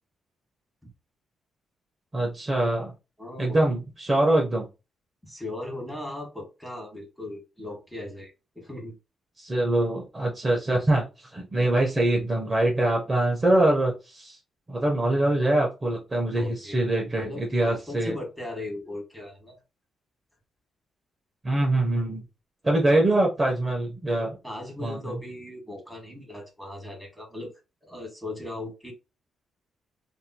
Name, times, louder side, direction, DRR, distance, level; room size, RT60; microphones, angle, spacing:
voice 1, 2.1-2.9 3.4-4.7 9.4-14.4 14.7-18.2 21.4-22.2 22.6-24.4 24.8-25.0, right 1 dB, 25° right, -1 dB, 0.8 m, -24 dB
voice 2, 3.2-3.6 5.2-8.9 16.3-16.9 17.2-19.6 22.9-23.1 24.4-27.5 27.8-28.9, left 2 dB, ahead, 0 dB, 1.3 m, -38 dB
2.9 x 2.7 x 2.2 m, 0.28 s
cardioid pair, 95°, 0 cm